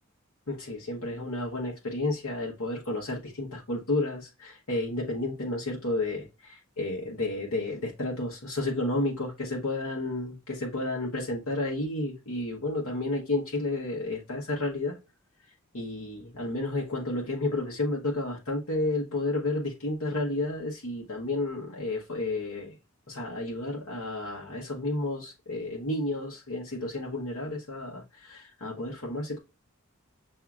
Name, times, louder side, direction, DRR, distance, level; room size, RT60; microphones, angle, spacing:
voice 1, 0.5-15.0 15.4-22.8 23.1-29.4, left 2 dB, 75° left, 1.1 m, -31 dB
7.1 x 2.7 x 2.4 m
head